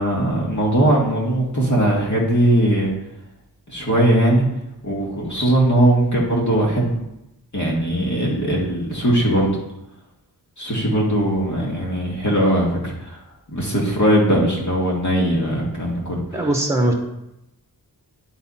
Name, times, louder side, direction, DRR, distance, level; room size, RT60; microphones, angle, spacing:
voice 1, 0.0-2.9 3.7-4.5 4.8-7.0 7.5-9.6 10.6-13.2 13.5-16.5, right 1 dB, 45° left, -2 dB, 2.2 m, -19 dB
voice 2, 16.3-16.9, right 1 dB, 5° right, 2 dB, 1.2 m, -20 dB
9.8 x 4.1 x 4.2 m, 0.89 s
wide cardioid pair, 80°, 38 cm